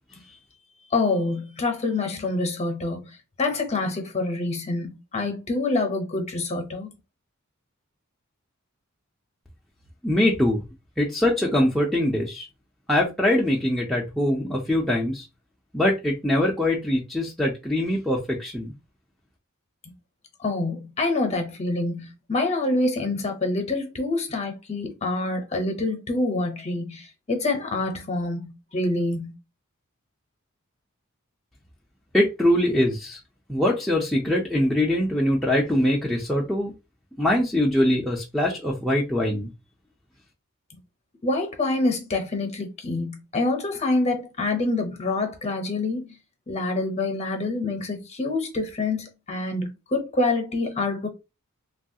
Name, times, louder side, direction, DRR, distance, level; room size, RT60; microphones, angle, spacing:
voice 1, 0.9-3.1 3.4-6.9 20.4-29.3 41.2-46.1 46.5-51.1, left 2 dB, 30° left, 0.7 m, -26 dB
voice 2, 10.0-10.6 11.0-12.5 12.9-15.3 15.7-18.7 32.1-33.2 33.5-36.7 37.2-39.5, left 1 dB, ahead, 0.4 m, -23 dB
3.1 x 2.3 x 2.7 m
head